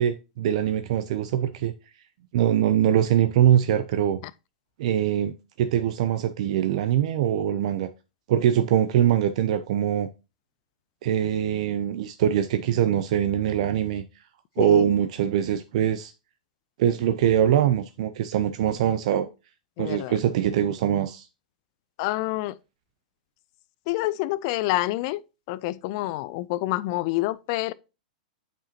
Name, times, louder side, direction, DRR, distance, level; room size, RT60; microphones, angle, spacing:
voice 1, 0.0-1.7 2.3-4.2 4.8-7.9 8.3-10.1 11.0-14.0 14.6-16.1 16.8-19.3 19.8-21.3, right 10 dB, 55° right, 0.5 m, -23 dB
voice 2, 14.6-14.9 19.8-20.2 22.0-22.6 23.9-25.2 25.5-27.7, left 18 dB, 40° left, 0.4 m, -27 dB
9.0 x 5.0 x 2.8 m
supercardioid pair, 160°, 4 cm